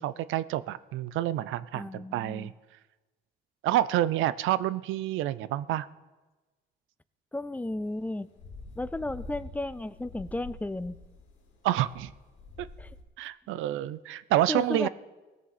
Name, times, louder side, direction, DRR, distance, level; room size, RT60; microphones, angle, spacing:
voice 1, 0.0-2.5 3.6-5.9 11.6-12.1 12.6-12.7 13.2-14.9, right 13 dB, 90° right, 17 dB, 0.5 m, -28 dB
voice 2, 1.7-2.5 7.3-8.3 8.8-11.0 12.8-12.9 14.5-14.9, left 1 dB, 10° left, 16 dB, 0.3 m, -34 dB
sound 1, 7.9-13.0, left 2 dB, 75° left, 2.2 m, -46 dB
17.5 x 7.1 x 4.2 m, 1.2 s
cardioid pair, 90°, 20 cm